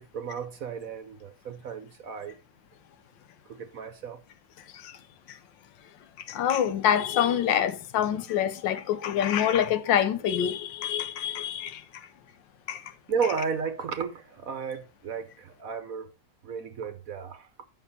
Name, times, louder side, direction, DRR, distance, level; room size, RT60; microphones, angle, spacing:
voice 1, 0.0-2.3 3.5-4.2 13.1-16.1 16.4-17.5, right 6 dB, 60° right, 1.1 m, -33 dB
voice 2, 6.3-12.1 12.7-12.9, left 9 dB, 80° left, 1.5 m, -26 dB
9.0 x 5.9 x 4.1 m
omnidirectional pair, 2.0 m